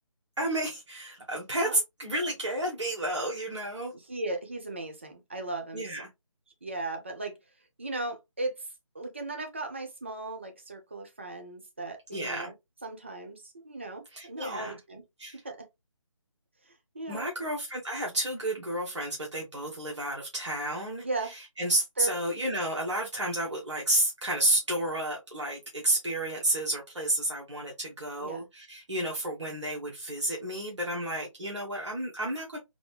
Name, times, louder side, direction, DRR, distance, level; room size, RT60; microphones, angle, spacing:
voice 1, 0.4-3.9 5.7-6.1 12.1-12.5 14.1-14.8 15.2-15.4 17.1-21.0 21.3-32.6, right 1 dB, 60° right, 1.2 m, -31 dB
voice 2, 3.9-6.0 6.6-7.3 7.8-8.7 8.9-12.5 12.8-15.0 15.3-15.6 16.7-17.3 21.0-21.3 22.0-22.1 28.2-28.4, right 2 dB, 20° right, 0.4 m, -37 dB
4.0 x 2.1 x 3.1 m
figure-of-eight pair, 155°, 17 cm